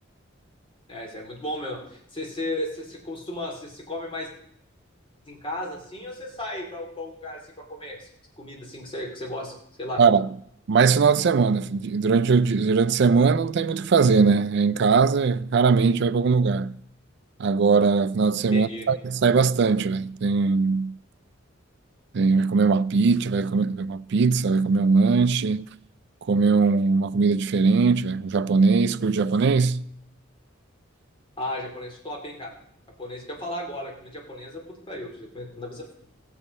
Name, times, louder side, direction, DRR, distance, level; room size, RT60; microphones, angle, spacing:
voice 1, 0.9-4.3 5.3-8.1 8.4-10.0 18.5-18.9 31.4-32.5 33.0-35.9, left 1 dB, 25° left, 2.5 m, -35 dB
voice 2, 10.0-10.3 10.7-16.8 17.4-20.9 22.1-25.7 26.3-29.8, right 4 dB, 55° right, 0.4 m, -20 dB
16.0 x 7.2 x 5.4 m
head